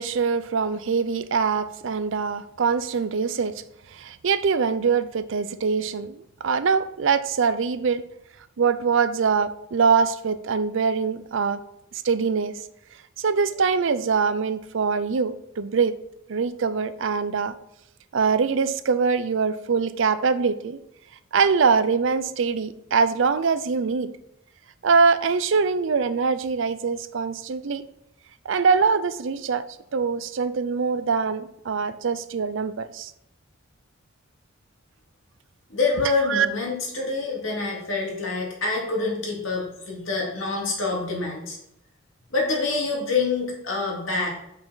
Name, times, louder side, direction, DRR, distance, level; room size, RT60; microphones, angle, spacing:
voice 1, 0.0-3.6 3.9-8.0 8.6-11.6 11.9-12.6 13.2-16.0 16.3-17.5 18.1-20.8 21.3-24.1 24.8-27.8 28.4-29.6 29.9-33.1 36.3-36.5, right 5 dB, 70° right, 13 dB, 0.5 m, -23 dB
voice 2, 35.7-41.6 42.3-44.3, left 3 dB, 90° left, -2 dB, 2.3 m, -26 dB
7.2 x 5.6 x 4.0 m, 0.79 s
head